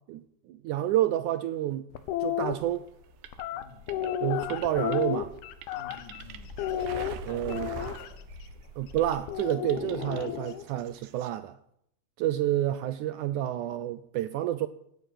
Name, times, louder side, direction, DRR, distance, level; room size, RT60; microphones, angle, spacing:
voice 1, 0.5-1.9 2.2-2.9 4.2-5.3 7.2-7.7 8.8-11.6 12.2-14.7, right 13 dB, 85° right, 1.7 m, -29 dB
sound 1, 1.9-2.5 3.3-6.2 6.6-8.1 9.3-10.6, left 11 dB, 85° left, 3.0 m, -32 dB
sound 2, 2.4-9.3, left 1 dB, 5° left, 4.4 m, -48 dB
sound 3, 2.5-8.7 9.0-11.3, right 9 dB, 70° right, 2.1 m, -46 dB
voice 2, 3.5-3.9 5.7-6.5 7.2-8.3 8.5-8.7, left 4 dB, 60° left, 3.9 m, -48 dB
17.0 x 9.5 x 8.7 m
omnidirectional pair, 4.4 m